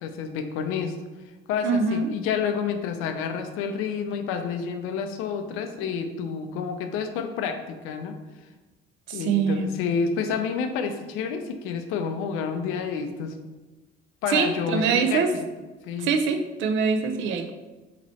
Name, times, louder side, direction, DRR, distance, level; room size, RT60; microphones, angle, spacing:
voice 1, 0.0-1.0 1.5-8.1 9.1-13.4 14.2-15.4 15.8-16.1, left 6 dB, 80° left, 6 dB, 0.5 m, -29 dB
voice 2, 1.6-2.1 9.1-9.7 14.3-15.3 16.0-17.5, right 5 dB, 65° right, 6 dB, 0.5 m, -24 dB
3.0 x 2.9 x 4.0 m, 1.2 s
cardioid pair, 145°, 21 cm